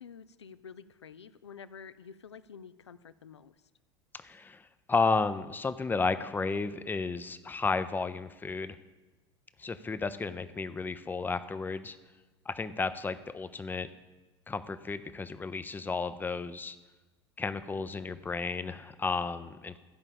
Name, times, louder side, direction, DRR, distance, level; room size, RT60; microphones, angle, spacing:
voice 1, 0.0-3.6, left 6 dB, 75° left, 15 dB, 0.5 m, -49 dB
voice 2, 4.2-8.8 9.6-12.0 12.5-13.9 14.5-16.8 17.4-19.8, left 4 dB, 15° left, 12 dB, 0.5 m, -33 dB
13.0 x 5.3 x 7.0 m, 1.2 s
figure-of-eight pair, 75°, 14 cm